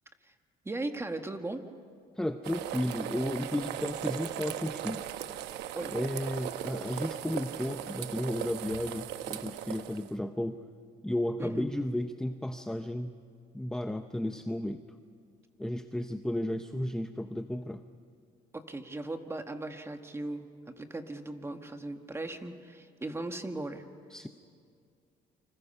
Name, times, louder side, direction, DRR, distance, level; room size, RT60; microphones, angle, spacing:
voice 1, 0.7-1.6 5.7-5.9 11.4-11.7 18.5-23.9, right 2 dB, 15° right, 6 dB, 1.7 m, -38 dB
voice 2, 2.1-5.1 5.9-10.6 11.0-13.1 13.5-14.8 15.6-17.8 24.1-24.3, left 1 dB, 5° left, 8 dB, 0.7 m, -33 dB
sound 1, 2.4-10.1, right 12 dB, 85° right, 1.0 m, -38 dB
28.5 x 25.5 x 5.6 m, 2.3 s
cardioid pair, 110°, 17 cm